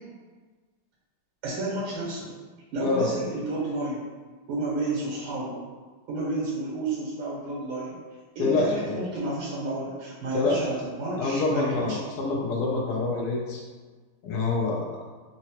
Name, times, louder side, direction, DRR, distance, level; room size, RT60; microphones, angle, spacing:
voice 1, 1.4-2.3 2.7-4.0 4.5-5.6 6.1-8.0 8.3-12.0, right 2 dB, 80° right, -7 dB, 1.7 m, -31 dB
voice 2, 8.4-9.0 10.3-10.6 11.2-13.6 14.2-14.9, left 3 dB, 75° left, -2 dB, 0.9 m, -26 dB
3.9 x 2.0 x 2.9 m, 1.4 s
omnidirectional pair, 2.1 m